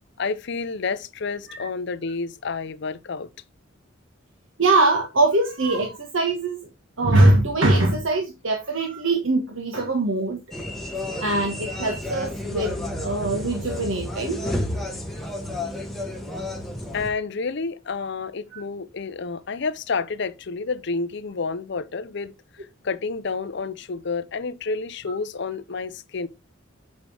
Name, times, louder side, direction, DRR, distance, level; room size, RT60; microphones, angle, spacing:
voice 1, 0.2-3.3 16.9-22.3 22.8-26.3, left 4 dB, 60° left, 0.6 m, -29 dB
voice 2, 4.6-6.7 7.0-10.4 11.2-14.4 18.5-18.6, right 2 dB, 85° right, 1.5 m, -22 dB
sound 1, 10.5-17.1, left 1 dB, ahead, 1.4 m, -31 dB
7.9 x 5.3 x 3.4 m
head